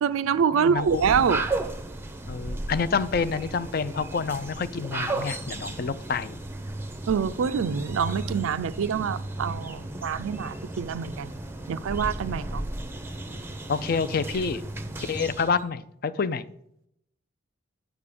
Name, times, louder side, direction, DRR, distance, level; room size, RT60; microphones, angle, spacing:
voice 1, 0.0-1.4 7.1-11.3 11.7-12.6, right 7 dB, 80° right, 0.4 m, -26 dB
voice 2, 0.5-1.1 2.3-6.4 13.7-14.6 15.0-16.4, left 5 dB, 45° left, 0.4 m, -28 dB
sound 1, 0.7-15.6, right 2 dB, 10° right, 0.5 m, -34 dB
9.0 x 3.5 x 6.7 m
head